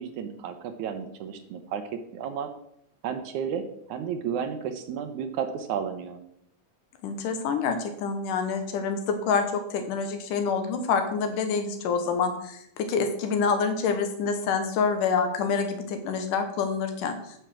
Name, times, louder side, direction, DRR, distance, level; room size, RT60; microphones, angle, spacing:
voice 1, 0.0-1.8 2.1-2.5 3.0-3.6 3.9-6.2, right 7 dB, 75° right, 8 dB, 2.1 m, -32 dB
voice 2, 7.0-17.3, left 5 dB, 80° left, 7 dB, 2.7 m, -27 dB
9.2 x 5.8 x 6.2 m, 0.74 s
omnidirectional pair, 3.7 m